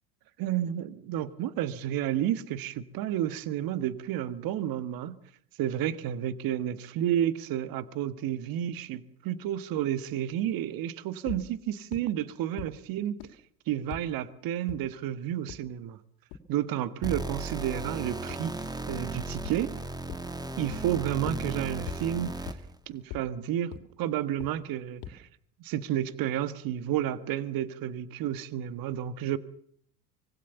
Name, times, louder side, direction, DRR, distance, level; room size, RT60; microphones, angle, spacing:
voice 1, 0.4-5.2 5.6-13.1 13.7-16.0 16.5-19.7 20.6-22.5 22.9-25.3 25.6-29.4, right 11 dB, 50° right, 1.7 m, -31 dB
sound 1, 11.3-11.4 11.9-12.0 12.6-12.7 13.2-13.3 13.9-14.0 14.7-14.8 15.5-15.6 16.3-16.4 18.3-18.4 19.5-19.6 20.1-20.2 20.7-20.8 21.3-21.4 21.9-22.0 22.5-22.6 23.1-23.2 23.7-23.8 24.4-24.5 25.0-25.1, left 11 dB, 55° left, 3.2 m, -38 dB
sound 2, 17.0-22.8, right 2 dB, 10° right, 2.1 m, -36 dB
25.0 x 20.5 x 7.0 m
hypercardioid pair, 75°, 45 cm